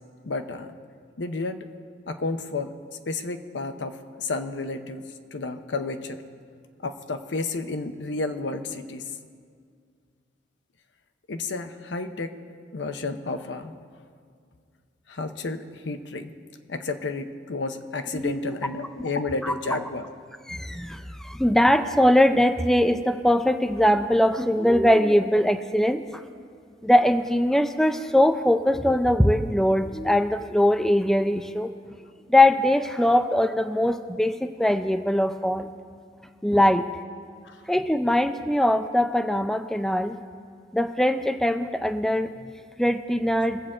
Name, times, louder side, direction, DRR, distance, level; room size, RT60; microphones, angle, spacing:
voice 1, 0.2-0.8 1.2-1.7 2.1-2.7 3.1-6.2 6.8-9.0 11.3-12.4 12.7-13.7 15.1-16.3 16.7-20.1 37.4-37.6, left 3 dB, 75° left, 8 dB, 0.7 m, -31 dB
voice 2, 18.1-18.5 19.4-19.5 20.5-26.0 26.8-31.7 32.3-35.7 36.4-36.9 37.7-40.2 40.7-42.3 42.8-43.6, left 1 dB, ahead, 8 dB, 0.4 m, -21 dB
23.0 x 7.7 x 3.7 m, 2.1 s
head